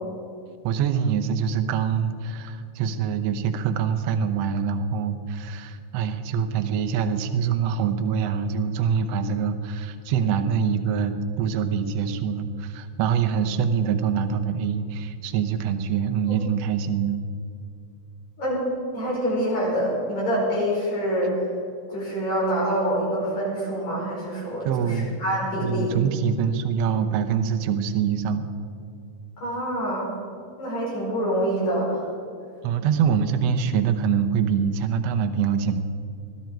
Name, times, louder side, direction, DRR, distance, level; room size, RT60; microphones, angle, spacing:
voice 1, 0.6-17.2 24.7-25.1 25.6-28.4 32.6-35.8, right 7 dB, 70° right, 8 dB, 1.8 m, -24 dB
voice 2, 18.9-21.5 21.9-26.0 29.4-30.2 30.6-32.1, equal, 65° left, -6 dB, 6.8 m, -26 dB
21.0 x 13.0 x 4.6 m, 2.3 s
omnidirectional pair, 3.4 m